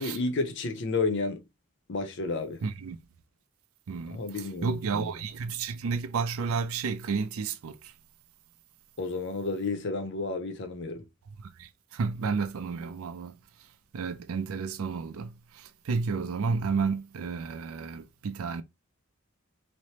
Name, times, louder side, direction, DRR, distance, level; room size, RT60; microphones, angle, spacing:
voice 1, 0.0-1.4 1.9-2.6 4.1-5.1 9.0-11.0, left 3 dB, 60° left, 0.6 m, -31 dB
voice 2, 2.6-3.0 3.9-7.9 11.6-13.4 13.9-18.6, right 5 dB, 85° right, 0.4 m, -32 dB
3.2 x 2.0 x 2.8 m
head